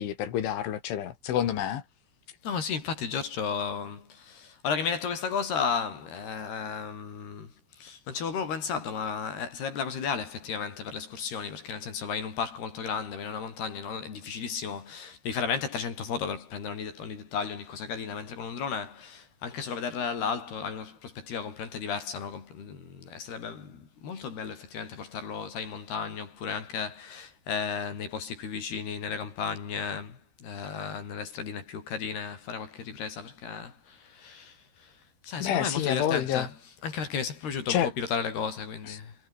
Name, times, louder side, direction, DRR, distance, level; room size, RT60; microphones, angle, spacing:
voice 1, 0.0-1.8 35.4-36.5 37.7-37.9 38.8-39.0, left 10 dB, 80° left, 4.8 m, -28 dB
voice 2, 2.4-7.5 7.8-34.9 35.2-39.2, left 6 dB, 55° left, 6.1 m, -34 dB
omnidirectional pair, 5.5 m